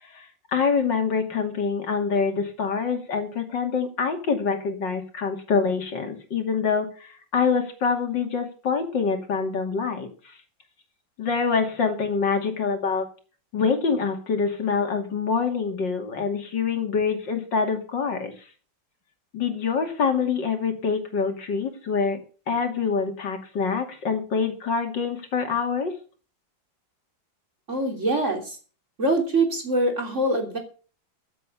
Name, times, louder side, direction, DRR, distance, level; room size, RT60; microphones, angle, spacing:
voice 1, 0.0-10.4 11.2-13.1 13.5-18.5 19.3-22.2 22.5-25.9, left 5 dB, 70° left, 5 dB, 3.1 m, -25 dB
voice 2, 27.7-28.6 29.0-30.6, right 2 dB, 40° right, 3 dB, 3.5 m, -24 dB
15.0 x 7.8 x 6.8 m, 0.39 s
omnidirectional pair, 2.1 m